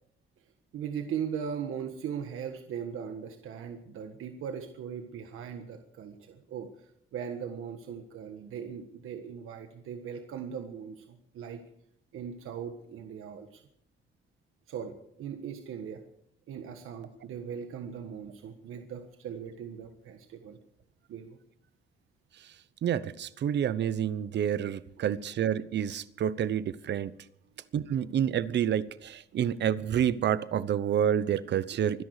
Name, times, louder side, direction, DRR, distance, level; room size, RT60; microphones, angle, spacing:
voice 1, 0.7-11.6 12.1-13.6 14.7-16.0 16.5-20.6 21.1-21.4, right 7 dB, 80° right, 6 dB, 1.5 m, -39 dB
voice 2, 22.8-27.1 27.7-32.0, right 9 dB, 55° right, 16 dB, 0.9 m, -28 dB
24.5 x 10.5 x 4.9 m, 0.74 s
cardioid pair, 155°, 21 cm